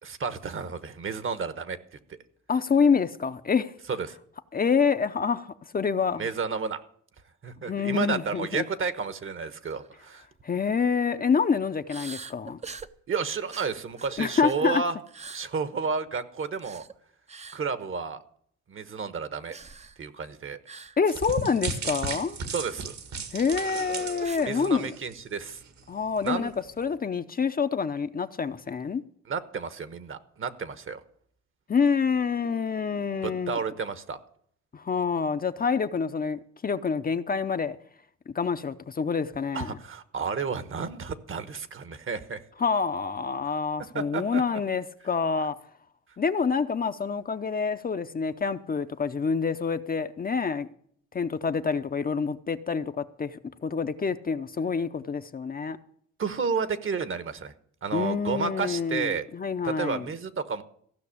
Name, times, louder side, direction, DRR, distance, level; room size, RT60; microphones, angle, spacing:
voice 1, 0.0-1.8 2.1-2.2 3.9-4.2 6.2-6.8 7.4-10.2 13.1-15.0 15.3-16.8 17.5-18.2 18.7-19.6 20.0-20.6 22.5-22.9 24.4-25.6 26.2-26.5 29.3-31.0 33.2-34.2 39.5-42.4 43.9-44.4 56.2-57.5 57.8-59.3 59.6-60.6, right 5 dB, 45° right, 1.2 m, -31 dB
voice 2, 2.5-3.7 4.5-6.2 7.7-8.6 10.4-12.6 14.2-14.8 21.0-22.4 23.3-24.9 25.9-26.5 26.8-29.0 31.7-33.6 34.7-37.8 38.3-39.8 42.6-45.5 46.2-50.7 51.1-55.8 57.9-60.1, left 5 dB, 30° left, 0.7 m, -27 dB
sound 1, 9.6-9.9 10.2-10.4 11.9-12.9 13.5-14.7 15.1-15.5 16.5-16.9 17.3-17.6 19.5-20.0 20.7-21.0 21.2-21.4 21.8-21.9 23.5-24.5, right 5 dB, 20° right, 0.6 m, -43 dB
sound 2, 21.1-25.3 25.7-25.8 26.3-26.4, right 5 dB, 65° right, 1.8 m, -35 dB
15.0 x 6.0 x 8.5 m
cardioid pair, 90°, 30 cm